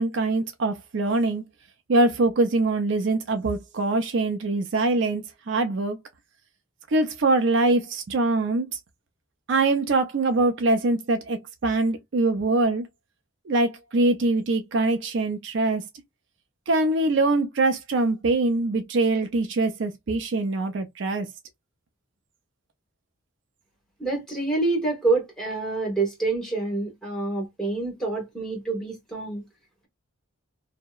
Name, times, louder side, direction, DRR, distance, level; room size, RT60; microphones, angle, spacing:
voice 1, 0.0-1.4 1.9-6.0 6.9-8.8 9.5-12.9 13.5-15.8 16.7-21.3, right 2 dB, 60° right, 0.4 m, -23 dB
voice 2, 24.0-29.4, right 3 dB, 5° left, 1.1 m, -27 dB
2.7 x 2.0 x 2.2 m
head